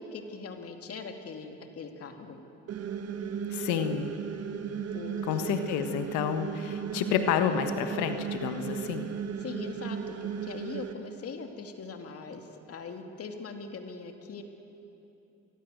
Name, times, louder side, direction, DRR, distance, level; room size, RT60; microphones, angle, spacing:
voice 1, 0.0-2.4 4.9-5.5 9.4-14.4, left 4 dB, 55° left, 5 dB, 2.8 m, -41 dB
sound 1, 2.7-10.9, right 7 dB, 55° right, 1.8 m, -35 dB
voice 2, 3.5-4.1 5.3-9.1, left 9 dB, 80° left, 8 dB, 1.4 m, -29 dB
26.5 x 20.5 x 7.9 m, 2.9 s
supercardioid pair, 70°, 29 cm